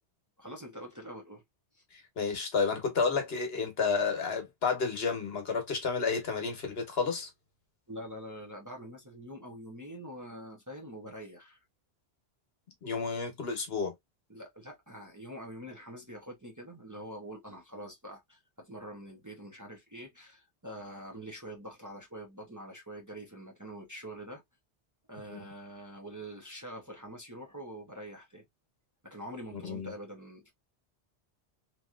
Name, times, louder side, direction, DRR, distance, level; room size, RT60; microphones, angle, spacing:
voice 1, 0.4-1.4 1.7-1.8 7.9-11.6 14.3-24.4 25.1-28.4 29.0-30.5, equal, 20° right, 0.8 m, -45 dB
voice 2, 2.2-7.3 12.8-13.9 25.3-25.5 29.5-29.9, left 5 dB, 65° left, 1.3 m, -31 dB
3.0 x 2.8 x 2.3 m
omnidirectional pair, 1.1 m